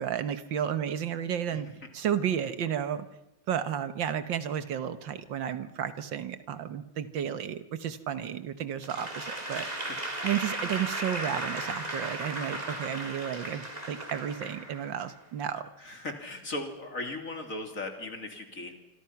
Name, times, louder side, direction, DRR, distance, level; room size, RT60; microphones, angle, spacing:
voice 1, 0.0-1.7 1.9-3.1 3.5-9.7 10.2-15.7, right 9 dB, 75° right, 12 dB, 1.8 m, -32 dB
Applause / Crowd, 8.8-15.2, right 1 dB, 20° right, 3.5 m, -36 dB
voice 2, 15.8-18.7, left 2 dB, 45° left, 5 dB, 3.3 m, -38 dB
26.5 x 25.5 x 5.9 m, 0.91 s
omnidirectional pair, 2.1 m